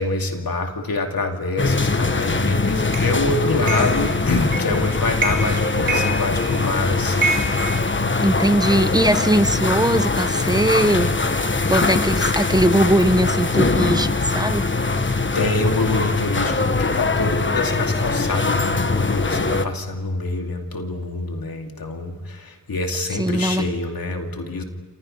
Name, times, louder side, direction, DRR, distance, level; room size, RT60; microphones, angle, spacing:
voice 1, 0.0-7.3 15.3-24.6, left 2 dB, 85° left, 3 dB, 2.6 m, -25 dB
sound 1, 1.6-19.7, left 3 dB, 35° left, 1.3 m, -22 dB
sound 2, 2.9-3.1 3.7-4.0 4.5-4.8 5.2-5.6 5.9-6.7 7.2-8.5, right 3 dB, 75° right, 3.8 m, -26 dB
voice 2, 8.2-11.4 11.7-14.7 23.2-23.8, right 1 dB, 10° right, 10 dB, 1.2 m, -20 dB
29.0 x 27.5 x 5.5 m, 1.3 s
wide cardioid pair, 65°, 35 cm